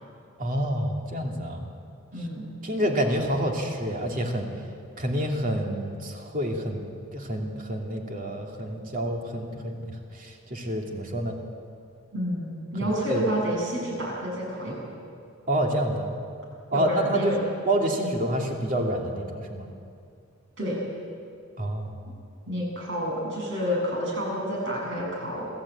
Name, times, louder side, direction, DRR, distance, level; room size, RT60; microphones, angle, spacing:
voice 1, 0.4-1.7 2.6-4.5 5.0-6.8 7.1-11.4 12.8-13.2 15.5-16.1 16.7-17.3 17.7-19.7 21.6-21.9, right 1 dB, 35° right, 1 dB, 2.7 m, -28 dB
voice 2, 2.1-2.5 12.1-14.8 16.7-17.4 18.0-18.2 20.6-20.8 22.5-25.5, equal, 55° right, -2 dB, 7.9 m, -29 dB
26.0 x 15.0 x 8.8 m, 2.4 s
head